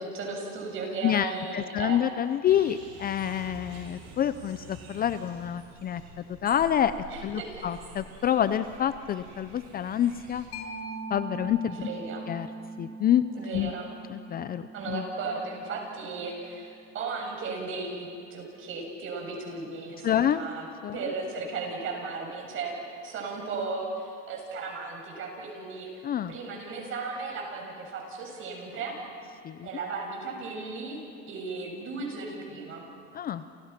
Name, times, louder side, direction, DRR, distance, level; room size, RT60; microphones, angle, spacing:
voice 1, 0.0-2.0 7.1-7.7 11.8-12.2 13.3-13.9 14.7-20.7 20.9-22.7 23.0-29.0 29.6-31.0 31.3-32.8, right 4 dB, 40° right, 1 dB, 7.8 m, -36 dB
voice 2, 1.0-6.0 6.4-6.9 7.2-10.4 11.1-11.9 12.3-12.5 12.8-13.2 13.5-13.7 14.1-15.0 20.0-20.4 20.8-21.0 26.0-26.3 29.4-29.7 33.1-33.4, left 10 dB, 30° left, 12 dB, 0.7 m, -27 dB
sound 1, 2.5-10.5, right 3 dB, 60° right, 7.1 m, -48 dB
Mallet percussion, 10.5-17.8, right 2 dB, 55° left, 6.1 m, -42 dB
29.5 x 29.5 x 6.0 m, 2.4 s
supercardioid pair, 130°, 31 cm